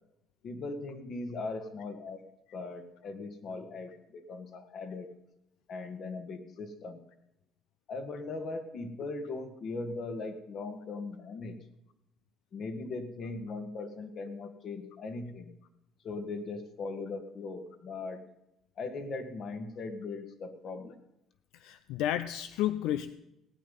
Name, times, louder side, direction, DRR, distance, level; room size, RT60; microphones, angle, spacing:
voice 1, 0.4-2.2 2.5-5.1 5.7-7.0 7.9-11.6 12.5-15.6 16.0-18.2 18.8-21.0, left 3 dB, 55° left, 8 dB, 1.8 m, -39 dB
voice 2, 21.6-23.1, left 12 dB, 85° left, 12 dB, 0.5 m, -31 dB
17.5 x 9.3 x 5.5 m, 0.86 s
cardioid pair, 100°, 0 cm